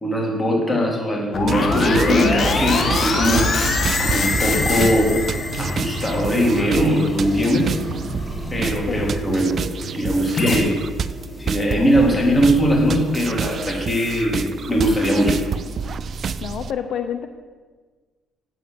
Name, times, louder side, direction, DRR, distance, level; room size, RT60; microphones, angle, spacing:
voice 1, 0.0-5.1 5.6-7.7 8.5-9.6 9.9-10.8 11.4-15.4, equal, 20° left, -2 dB, 3.3 m, -20 dB
sound 1, 1.3-6.6 10.4-10.6, left 3 dB, 45° left, 1.8 m, -22 dB
sound 2, 1.5-16.7, right 6 dB, 45° right, 0.4 m, -29 dB
sound 3, 1.6-15.8, equal, 10° right, 3.9 m, -33 dB
voice 2, 16.4-17.3, left 8 dB, 65° left, 8 dB, 0.7 m, -28 dB
9.1 x 8.0 x 7.7 m, 1.4 s
cardioid pair, 110°, 0 cm